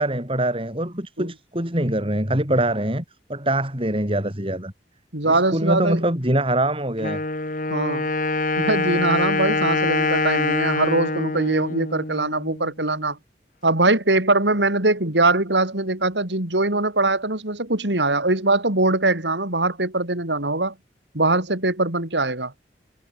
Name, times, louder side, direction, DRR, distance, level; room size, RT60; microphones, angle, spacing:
voice 1, 0.0-3.0 3.3-4.7 5.2-7.2, right 1 dB, 30° right, 6.9 m, -23 dB
voice 2, 5.1-6.0 7.7-8.1 8.6-13.2 13.6-20.7 21.1-22.5, right 2 dB, 80° right, 4.6 m, -22 dB
Wind instrument woodwind instrument, 7.0-12.7, left 3 dB, 50° left, 2.9 m, -24 dB
head